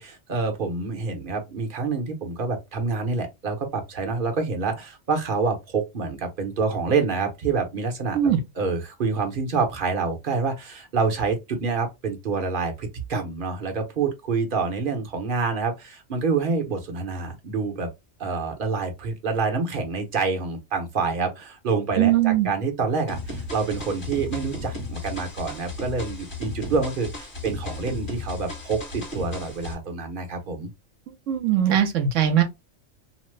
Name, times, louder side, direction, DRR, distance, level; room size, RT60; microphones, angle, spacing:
voice 1, 0.0-8.2 8.6-17.9 18.2-30.7, right 4 dB, 50° right, 0.9 m, -27 dB
voice 2, 22.0-22.5 31.1-32.4, right 10 dB, 75° right, 1.0 m, -20 dB
sound 1, 23.1-29.7, left 2 dB, 45° left, 1.4 m, -35 dB
2.9 x 2.0 x 3.1 m
omnidirectional pair, 1.3 m